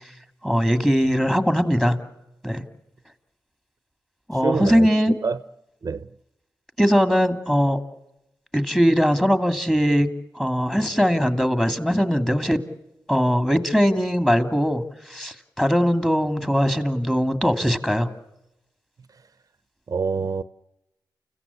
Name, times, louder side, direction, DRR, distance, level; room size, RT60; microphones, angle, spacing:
voice 1, 0.4-2.0 2.4-2.6 4.3-5.1 6.8-7.8 8.5-10.1 10.4-12.6 13.1-14.8 15.1-18.1, equal, 5° left, 2.4 m, -20 dB
voice 2, 4.4-4.9 5.2-5.4 5.8-6.1 19.9-20.4, right 5 dB, 50° right, 0.8 m, -25 dB
29.5 x 16.0 x 8.5 m
cardioid pair, 70°, 8 cm